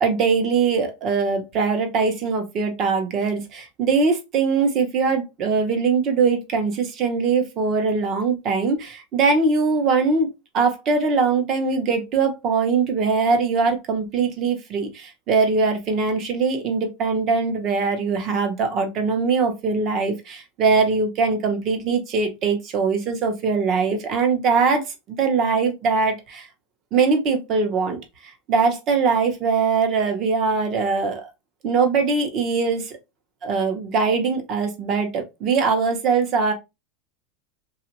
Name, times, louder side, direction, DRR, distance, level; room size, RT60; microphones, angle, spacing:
voice 1, 0.0-26.5 26.9-31.3 31.6-32.9 33.4-36.5, right 4 dB, 35° right, 0.7 m, -22 dB
2.9 x 2.4 x 2.9 m
supercardioid pair, 150°, 0 cm